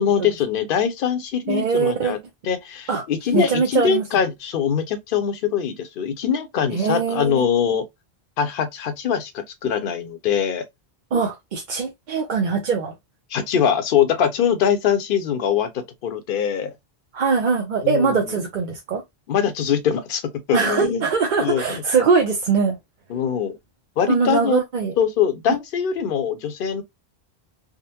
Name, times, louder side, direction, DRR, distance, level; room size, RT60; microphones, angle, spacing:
voice 1, 0.0-2.2 2.4-7.8 8.4-9.3 9.6-10.6 13.3-16.7 17.8-18.4 19.3-20.2 20.5-21.0 21.4-21.8 23.1-23.6 24.0-24.6 25.0-26.8, left 8 dB, 60° left, 0.7 m, -22 dB
voice 2, 1.5-2.2 2.9-3.0 3.3-4.0 6.7-7.5 11.1-12.9 17.1-19.0 20.5-22.8 24.1-24.9, right 5 dB, 50° right, 0.7 m, -22 dB
3.6 x 2.0 x 2.7 m
omnidirectional pair, 1.1 m